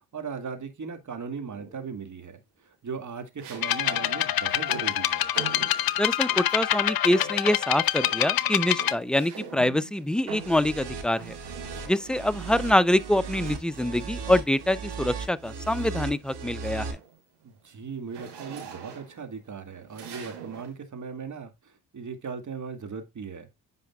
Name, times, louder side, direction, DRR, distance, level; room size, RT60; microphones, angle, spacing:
voice 1, 0.1-5.3 17.4-23.5, right 5 dB, 45° right, 2.2 m, -38 dB
sound 1, 1.5-2.1 3.4-6.7 7.1-7.6 7.9-12.3 13.5-14.9 15.4-15.6 16.0-20.8, right 7 dB, 85° right, 3.3 m, -44 dB
sound 2, 3.6-8.9, left 13 dB, 60° left, 0.7 m, -26 dB
voice 2, 6.0-11.4 11.9-17.0, left 1 dB, ahead, 0.6 m, -25 dB
sound 3, 10.3-16.9, right 5 dB, 70° right, 2.3 m, -37 dB
9.1 x 5.3 x 2.3 m
supercardioid pair, 55°, 42 cm